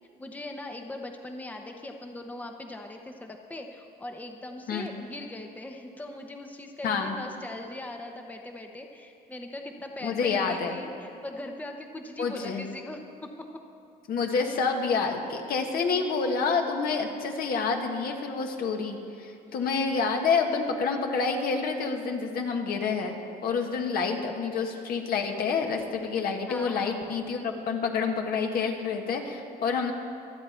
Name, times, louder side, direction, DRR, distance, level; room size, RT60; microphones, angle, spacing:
voice 1, 0.2-13.5 19.5-19.6 26.5-27.0, left 1 dB, 10° left, 4 dB, 0.9 m, -40 dB
voice 2, 6.8-7.1 10.0-10.8 12.2-12.6 14.1-23.1 23.4-29.9, left 5 dB, 60° left, 3 dB, 1.6 m, -28 dB
24.5 x 8.4 x 4.5 m, 2.6 s
cardioid pair, 110°, 17 cm